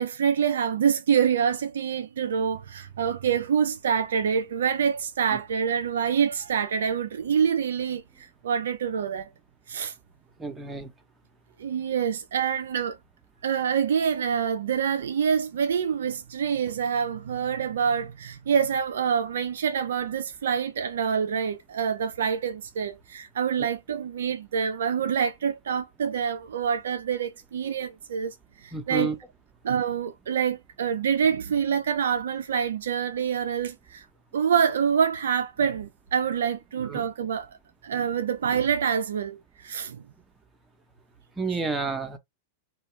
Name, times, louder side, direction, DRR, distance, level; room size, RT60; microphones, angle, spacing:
voice 1, 0.0-9.3 9.7-9.9 11.6-13.0 13.4-28.3 28.6-29.1 29.6-34.1 34.3-37.5 37.8-40.0, right 7 dB, 65° right, 0.3 m, -26 dB
voice 2, 10.4-10.9 28.7-29.2 36.8-37.0 41.4-42.2, right 4 dB, 15° right, 0.7 m, -30 dB
2.3 x 2.2 x 3.0 m
figure-of-eight pair, 95°, 0 cm